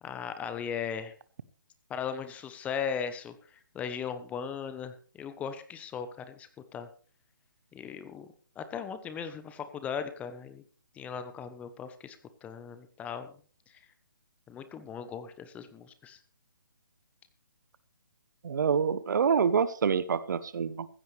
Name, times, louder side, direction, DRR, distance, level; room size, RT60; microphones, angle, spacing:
voice 1, 0.0-1.1 1.9-6.9 7.7-8.3 8.6-10.6 10.9-13.3 13.7-13.8 14.5-16.2, left 7 dB, 10° left, 11 dB, 1.0 m, -38 dB
voice 2, 18.4-20.9, right 6 dB, 60° right, 16 dB, 1.0 m, -26 dB
15.0 x 13.5 x 3.3 m, 0.41 s
hypercardioid pair, 145°, 11 cm